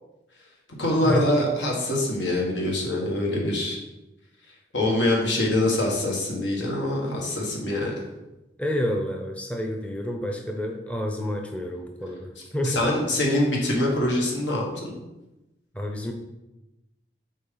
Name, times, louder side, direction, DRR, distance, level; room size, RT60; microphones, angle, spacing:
voice 1, 0.8-3.8 4.7-7.9 12.6-15.0, left 1 dB, 85° left, -1 dB, 1.7 m, -24 dB
voice 2, 8.6-12.8 15.7-16.1, equal, 5° left, 2 dB, 0.5 m, -29 dB
7.1 x 4.3 x 3.9 m, 0.99 s
head